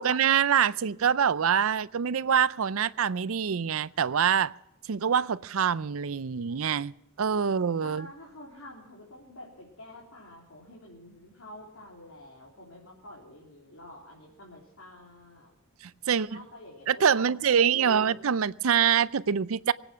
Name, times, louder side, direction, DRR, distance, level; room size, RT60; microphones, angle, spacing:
voice 1, 0.0-4.5 4.9-6.9 7.2-8.1 15.8-16.4 16.9-19.7, right 7 dB, 75° right, 18 dB, 0.5 m, -25 dB
voice 2, 7.7-15.5 16.1-18.2, left 1 dB, 80° left, -4 dB, 3.8 m, -48 dB
23.5 x 9.0 x 5.8 m, 0.90 s
head